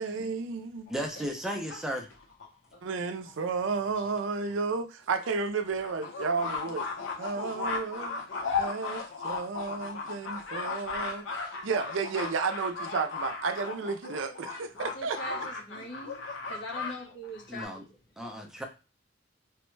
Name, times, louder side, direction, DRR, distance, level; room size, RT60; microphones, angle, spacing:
voice 1, 0.0-0.9 2.8-6.9 7.2-8.2 8.6-11.2 11.6-15.2, right 4 dB, 80° right, 0.4 m, -32 dB
sound 1, 0.9-2.5 3.2-3.3 3.6-3.7 4.0-4.1 4.5-4.6 5.1-16.9 17.2-17.6, left 4 dB, 90° left, 0.7 m, -36 dB
voice 2, 0.9-2.1 17.5-17.8 18.2-18.7, equal, 5° right, 0.5 m, -34 dB
voice 3, 14.8-18.0, equal, 70° left, 1.2 m, -42 dB
3.3 x 2.1 x 3.1 m
head